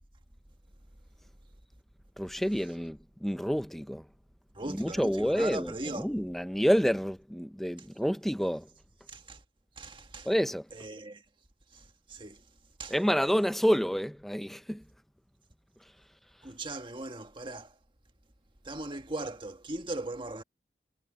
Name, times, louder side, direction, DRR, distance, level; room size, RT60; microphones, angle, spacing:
voice 1, 2.2-4.0 4.7-8.7 10.2-10.7 12.9-14.8, equal, ahead, 0.7 m, -28 dB
voice 2, 4.5-6.1 9.1-9.4 9.8-10.3 10.7-11.2 11.7-12.4 12.8-13.0 16.4-17.8 18.6-20.4, right 2 dB, 30° right, 1.7 m, -39 dB
head